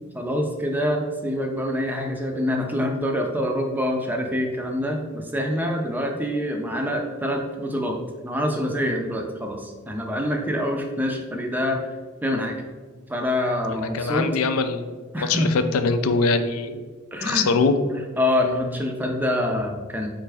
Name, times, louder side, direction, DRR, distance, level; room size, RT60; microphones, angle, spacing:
voice 1, 0.1-11.8 12.2-12.6 13.1-14.3 15.1-15.5 17.1-17.5 17.9-20.1, left 1 dB, 10° right, 2 dB, 0.4 m, -26 dB
voice 2, 13.7-14.9 15.2-16.8 17.2-17.8, left 4 dB, 85° left, 8 dB, 0.4 m, -22 dB
4.0 x 3.3 x 3.4 m, 1.4 s
head